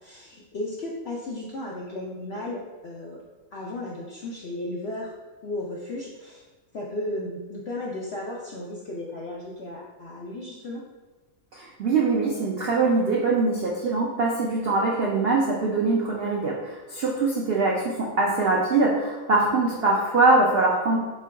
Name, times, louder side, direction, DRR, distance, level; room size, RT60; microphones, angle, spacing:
voice 1, 0.0-3.2 3.5-5.1 5.4-6.4 6.7-10.8, left 1 dB, 70° left, -4 dB, 0.6 m, -34 dB
voice 2, 11.5-21.0, right 3 dB, 75° right, -3 dB, 0.5 m, -23 dB
4.4 x 2.2 x 4.6 m, 1.2 s
omnidirectional pair, 1.7 m